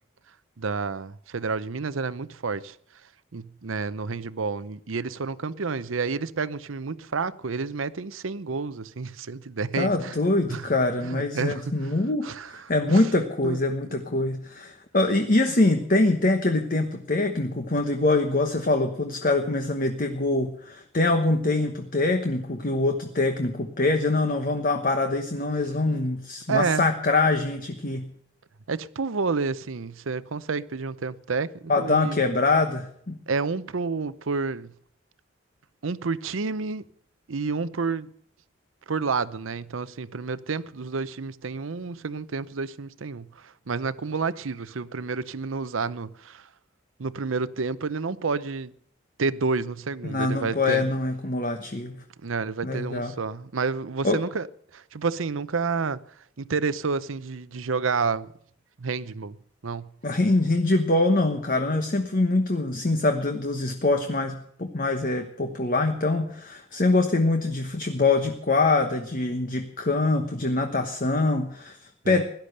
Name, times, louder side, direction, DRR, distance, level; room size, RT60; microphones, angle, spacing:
voice 1, 0.6-2.8 3.3-10.1 10.5-10.7 11.0-11.9 12.2-12.5 12.9-13.1 13.4-13.6 26.5-26.9 28.7-32.2 33.3-34.7 35.8-36.8 37.3-38.1 38.9-46.5 47.0-48.7 49.2-50.9 52.2-54.5 54.7-56.0 56.4-58.3 58.8-59.4 59.6-59.9 72.0-72.2, right 4 dB, 90° right, 0.7 m, -29 dB
voice 2, 9.8-28.1 31.7-33.2 50.0-52.0 52.6-53.1 54.0-54.2 60.0-72.2, left 2 dB, 45° left, 1.1 m, -24 dB
17.0 x 12.0 x 6.6 m
head